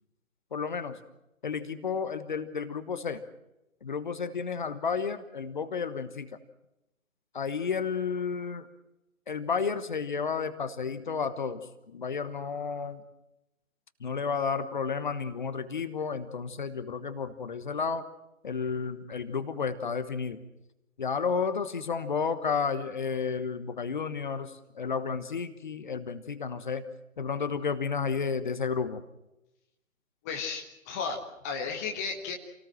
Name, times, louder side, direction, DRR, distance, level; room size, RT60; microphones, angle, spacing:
voice 1, 0.5-1.0 1.4-3.2 3.8-6.3 7.3-8.7 9.3-11.6 11.9-13.0 14.0-18.0 18.4-20.4 21.0-26.8 27.2-29.0, left 5 dB, 35° left, 11 dB, 1.3 m, -32 dB
voice 2, 30.2-32.3, left 5 dB, 10° left, 2 dB, 1.2 m, -34 dB
28.0 x 18.5 x 7.6 m, 0.92 s
figure-of-eight pair, 145°, 41 cm